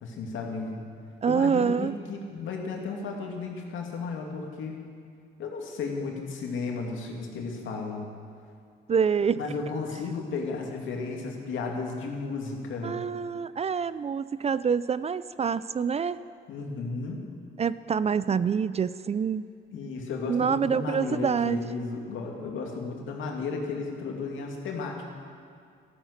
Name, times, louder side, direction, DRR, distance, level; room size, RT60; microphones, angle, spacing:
voice 1, 0.0-0.9 1.3-4.8 5.4-8.1 9.4-13.0 16.5-17.3 19.7-25.0, left 4 dB, 80° left, 1 dB, 2.5 m, -34 dB
voice 2, 1.2-1.9 8.9-9.4 12.8-16.2 17.6-19.4 20.3-21.6, right 6 dB, 30° right, 16 dB, 0.4 m, -26 dB
13.5 x 13.0 x 6.6 m, 2.2 s
cardioid pair, 90°, 20 cm